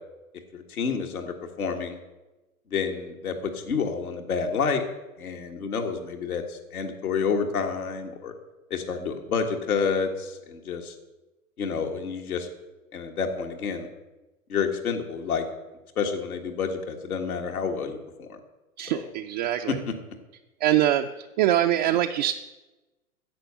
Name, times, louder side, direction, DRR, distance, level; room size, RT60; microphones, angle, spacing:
voice 1, 0.5-2.0 2.7-4.8 5.2-8.3 8.7-10.9 11.6-12.5 12.9-13.9 14.5-15.5 16.0-18.4 18.9-19.1 19.7-19.9, left 5 dB, 75° left, 3 dB, 1.9 m, -29 dB
voice 2, 18.8-19.8 20.6-21.1 21.4-22.3, right 12 dB, 35° right, 4 dB, 0.4 m, -23 dB
10.0 x 7.5 x 6.9 m, 1.1 s
hypercardioid pair, 110°, 43 cm